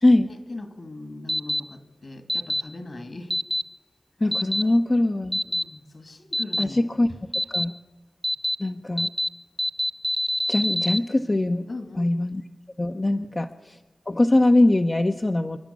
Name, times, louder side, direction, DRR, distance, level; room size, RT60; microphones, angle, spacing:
voice 1, 0.3-3.4 4.6-4.8 5.4-6.9 11.7-12.1 13.1-13.3, left 2 dB, 55° left, 9 dB, 2.2 m, -39 dB
sound 1, 1.3-1.6 2.3-2.6 3.3-3.6 4.3-4.6 5.3-5.6 6.3-6.6 7.3-7.6 8.2-8.5 9.0-9.3 9.6-11.0, equal, ahead, 0.8 m, -25 dB
voice 2, 4.2-5.4 6.6-7.1 7.5-7.7 8.6-9.1 10.5-11.7 12.0-12.4 12.8-13.5 14.1-15.6, left 2 dB, 35° left, 4 dB, 0.9 m, -21 dB
28.5 x 11.0 x 8.5 m, 1.2 s
cardioid pair, 50°, 0 cm